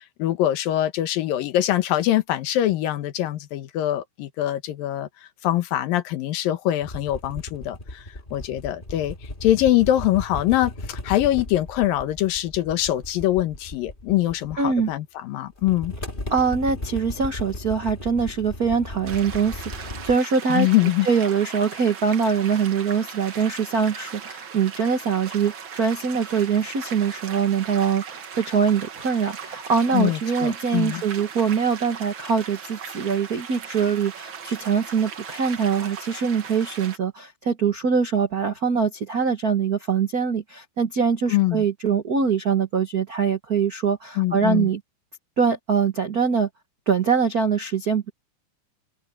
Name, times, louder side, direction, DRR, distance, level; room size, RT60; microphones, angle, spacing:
voice 1, 0.0-5.1 5.4-9.2 9.4-15.9 20.5-21.1 29.9-31.0 41.3-41.6 44.2-44.7, left 13 dB, 85° left, 3.0 m, -23 dB
sound 1, 6.8-14.9 15.6-20.2, left 1 dB, 15° left, 2.2 m, -36 dB
voice 2, 14.6-14.9 16.3-20.7 21.0-44.8 45.4-46.5 46.9-48.1, right 6 dB, 80° right, 0.8 m, -23 dB
sound 2, 19.1-37.0, right 7 dB, 50° right, 1.7 m, -38 dB
omnidirectional pair, 3.9 m